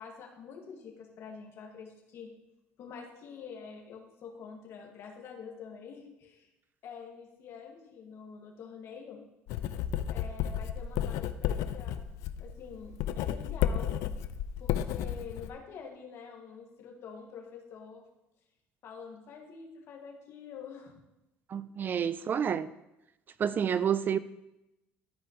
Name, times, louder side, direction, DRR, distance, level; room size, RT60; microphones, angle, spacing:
voice 1, 0.0-2.3 2.8-6.5 6.8-9.2 10.1-12.0 12.4-13.9 14.6-18.0 18.8-20.9, left 6 dB, 60° left, 1.9 m, -46 dB
Writing, 9.5-15.5, left 10 dB, 80° left, 0.4 m, -32 dB
voice 2, 21.5-22.7 23.4-24.2, right 8 dB, 40° right, 0.4 m, -29 dB
13.0 x 5.0 x 3.1 m
supercardioid pair, 95°, 5 cm